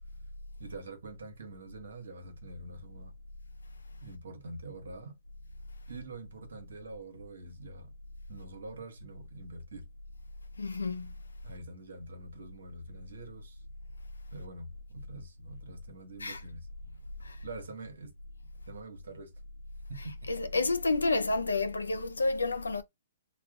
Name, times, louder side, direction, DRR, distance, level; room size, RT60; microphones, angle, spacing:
voice 1, 0.6-3.1 4.0-5.2 5.9-7.9 8.3-9.9 11.4-13.6 14.3-16.7 17.4-18.1 18.7-19.3 19.9-20.1, right 2 dB, 70° right, 1.0 m, -45 dB
voice 2, 10.6-11.1 16.2-16.4 17.2-17.4 20.3-22.8, left 3 dB, 85° left, 0.4 m, -30 dB
2.3 x 2.2 x 3.5 m
figure-of-eight pair, 120°, 0 cm